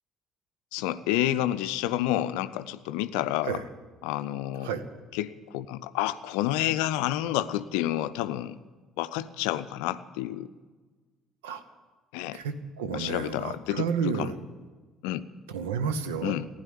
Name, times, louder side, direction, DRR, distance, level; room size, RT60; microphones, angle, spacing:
voice 1, 0.7-3.6 4.0-4.7 5.1-8.6 9.0-10.5 12.1-12.4 12.9-14.3 15.0-15.2 16.2-16.5, left 13 dB, 65° left, 13 dB, 0.5 m, -29 dB
voice 2, 12.3-14.4 15.5-16.4, right 6 dB, 70° right, 11 dB, 0.9 m, -31 dB
15.5 x 10.5 x 8.7 m, 1.4 s
figure-of-eight pair, 50°, 0 cm